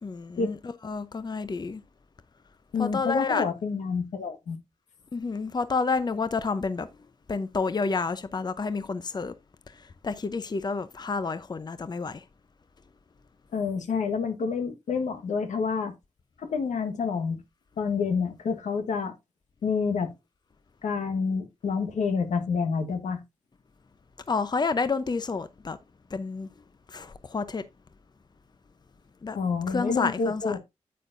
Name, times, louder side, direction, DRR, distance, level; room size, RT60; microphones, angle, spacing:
voice 1, 0.0-1.8 2.8-3.4 5.1-6.9 7.3-9.3 9.7-12.2 24.3-25.8 26.1-26.5 26.9-27.6 29.2-29.4 29.7-30.6, left 4 dB, 35° left, 0.7 m, -29 dB
voice 2, 2.7-4.6 13.5-15.9 16.4-17.4 17.8-19.1 19.6-20.1 20.8-23.2 29.3-30.6, left 5 dB, 85° left, 1.4 m, -28 dB
8.5 x 8.4 x 2.6 m
cardioid pair, 65°, 12 cm